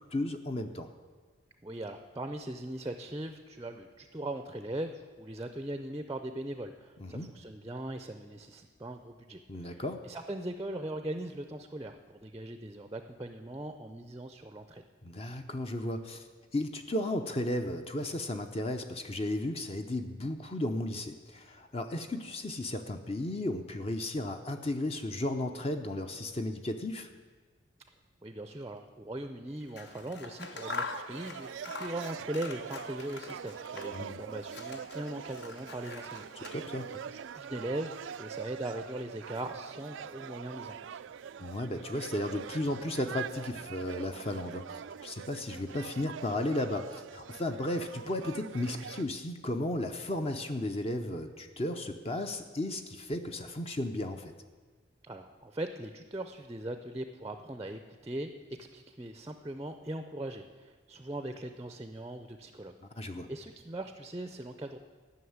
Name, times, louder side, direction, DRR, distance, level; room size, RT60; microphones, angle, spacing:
voice 1, 0.1-0.9 7.0-7.3 9.5-10.0 15.0-16.3 16.5-27.1 33.9-34.2 36.3-36.9 41.4-54.3 62.8-63.3, left 1 dB, 30° left, 6 dB, 0.6 m, -34 dB
voice 2, 1.6-14.8 28.2-36.5 37.1-41.0 55.0-58.3 58.6-62.7 63.0-64.8, right 1 dB, 15° right, 8 dB, 0.5 m, -40 dB
Scissors, 29.6-34.1 34.4-37.0, left 4 dB, 60° left, 0.8 m, -44 dB
sound 1, 30.4-49.0, right 7 dB, 75° right, 0.4 m, -44 dB
13.0 x 6.4 x 9.4 m, 1.4 s
head